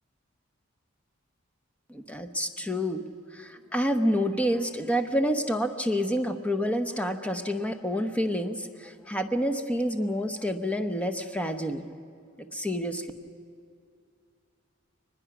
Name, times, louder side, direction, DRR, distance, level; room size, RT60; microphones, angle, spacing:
voice 1, 1.9-3.0 3.3-11.9 12.4-13.1, equal, 5° left, 8 dB, 0.9 m, -28 dB
23.5 x 20.5 x 6.0 m, 2.3 s
head